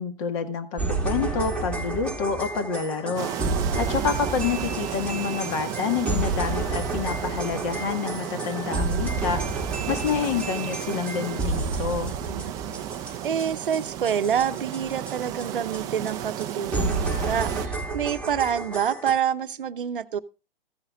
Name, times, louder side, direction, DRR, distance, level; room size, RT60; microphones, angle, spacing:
voice 1, 0.0-3.3 3.7-9.4 9.9-12.1, left 6 dB, 35° left, 8 dB, 1.7 m, -28 dB
sound 1, 0.8-15.5 15.7-15.8 16.1-16.2 16.4-16.5 16.7-19.1, right 3 dB, 5° left, 2.4 m, -30 dB
sound 2, 3.2-17.7, right 11 dB, 15° right, 0.5 m, -34 dB
voice 2, 13.2-20.2, right 8 dB, 65° right, 12 dB, 0.8 m, -27 dB
15.5 x 9.7 x 2.4 m, 0.31 s
figure-of-eight pair, 120°, 29 cm